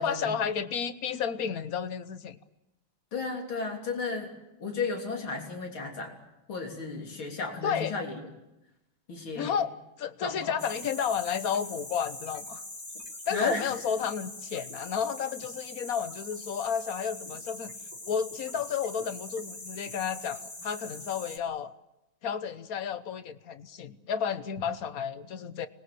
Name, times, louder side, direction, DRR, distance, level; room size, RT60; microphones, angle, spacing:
voice 1, 0.0-2.4 7.6-7.9 9.3-12.6 13.3-17.7 18.1-21.7 22.2-25.7, left 7 dB, 55° left, 13 dB, 1.3 m, -32 dB
voice 2, 3.1-4.3 4.6-6.1 6.5-8.2 9.1-9.6 10.2-10.6 13.3-13.7, left 3 dB, 85° left, 2 dB, 4.2 m, -34 dB
sound 1, 10.6-21.4, left 2 dB, 25° left, 3.2 m, -43 dB
25.5 x 20.5 x 7.8 m, 0.95 s
omnidirectional pair, 2.2 m